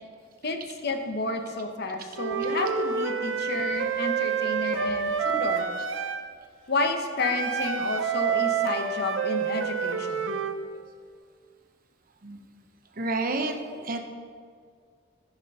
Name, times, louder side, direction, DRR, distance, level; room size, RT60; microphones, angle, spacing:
voice 1, 0.4-5.7 6.7-10.4, left 2 dB, 60° left, 5 dB, 1.0 m, -31 dB
Wind instrument woodwind instrument, 2.2-6.2 7.2-10.6, right 6 dB, 80° right, 0.7 m, -28 dB
voice 2, 4.3-4.7 12.2-12.4 13.0-14.0, right 2 dB, 50° right, 5 dB, 0.9 m, -31 dB
14.0 x 6.0 x 5.5 m, 2.1 s
head